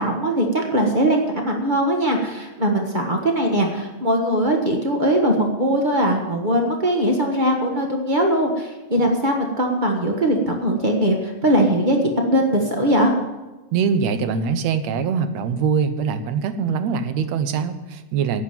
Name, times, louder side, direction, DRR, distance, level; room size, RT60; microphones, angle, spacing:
voice 1, 0.0-13.1, right 1 dB, 90° right, 2 dB, 0.4 m, -20 dB
voice 2, 13.7-18.4, right 6 dB, 70° right, 10 dB, 2.0 m, -23 dB
11.5 x 8.6 x 9.0 m, 1.1 s
omnidirectional pair, 3.4 m